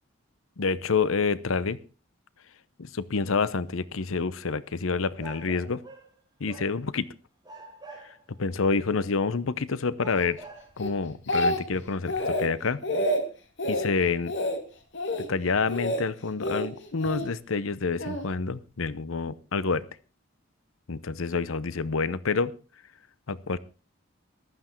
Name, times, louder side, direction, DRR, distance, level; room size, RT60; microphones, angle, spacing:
voice 1, 0.6-1.8 2.8-5.8 6.4-7.1 8.4-10.4 10.8-12.8 13.7-14.3 15.3-19.8 20.9-22.5 23.3-23.6, left 4 dB, 80° left, 17 dB, 0.8 m, -28 dB
sound 1, 3.7-3.8 5.2-6.2 6.5-7.1 7.4-8.4 9.2-9.3 10.0-10.8, right 2 dB, 20° right, 4.4 m, -46 dB
Speech, 10.8-11.8 12.1-12.5 12.8-13.2 13.6-13.9 14.3-14.6 14.9-15.3 15.7-16.0 16.4-17.2 18.0-18.3, left 1 dB, 60° left, 2.7 m, -28 dB
15.0 x 12.0 x 4.5 m, 0.34 s
head